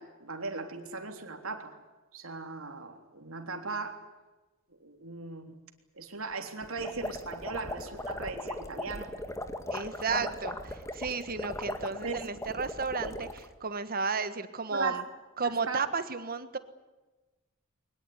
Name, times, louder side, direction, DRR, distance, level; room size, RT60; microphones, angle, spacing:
voice 1, 0.0-1.7 2.1-4.1 4.8-5.5 6.0-9.1 10.1-10.3 11.8-12.3 13.0-13.1 14.7-15.1 15.4-15.8, right 4 dB, 75° right, 5 dB, 3.4 m, -38 dB
sound 1, 6.6-13.5, left 1 dB, 15° left, 1.8 m, -38 dB
voice 2, 9.7-13.3 13.6-15.0 15.4-16.6, right 4 dB, 45° right, 12 dB, 1.5 m, -33 dB
22.5 x 20.5 x 9.7 m, 1.2 s
head